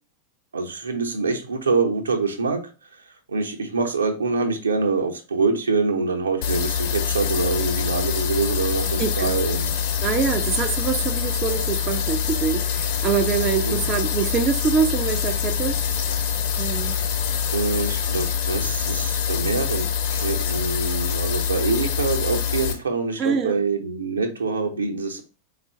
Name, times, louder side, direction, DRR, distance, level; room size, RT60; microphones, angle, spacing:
voice 1, 0.5-2.7 3.3-9.7 13.5-13.8 17.5-19.9 20.1-25.2, right 4 dB, 75° right, 0.8 m, -25 dB
sound 1, 6.4-22.7, left 7 dB, 45° left, 0.8 m, -25 dB
voice 2, 9.0-9.3 10.0-15.8 16.6-17.0 23.2-23.6, right 6 dB, 30° right, 0.4 m, -24 dB
4.3 x 2.4 x 4.2 m
figure-of-eight pair, 90°, 0 cm